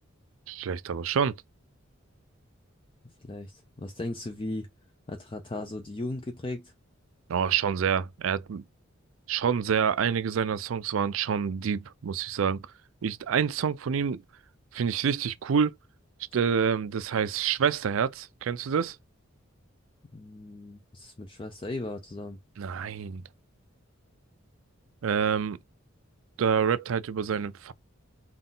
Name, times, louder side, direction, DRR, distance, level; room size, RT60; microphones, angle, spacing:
voice 1, 0.5-1.4 7.3-8.6 9.3-12.6 13.0-14.2 14.7-15.7 16.3-19.0 22.6-23.2 25.0-25.6 26.4-27.7, right 7 dB, 75° right, 0.4 m, -27 dB
voice 2, 3.2-4.7 5.1-6.7 20.1-22.4, left 2 dB, 25° left, 0.5 m, -37 dB
3.7 x 2.4 x 3.9 m
head